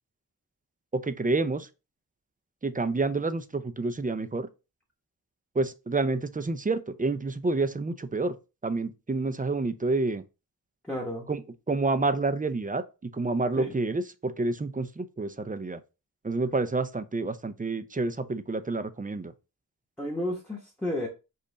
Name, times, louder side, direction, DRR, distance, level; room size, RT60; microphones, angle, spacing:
voice 1, 0.9-1.7 2.6-4.5 5.6-8.4 8.6-10.2 11.3-11.4 11.7-15.8 16.2-19.3, right 3 dB, 20° right, 0.4 m, -28 dB
voice 2, 10.8-11.3 13.6-13.7 20.0-21.1, left 1 dB, 5° left, 1.0 m, -32 dB
5.3 x 2.4 x 3.9 m
wide cardioid pair, 70°, 40 cm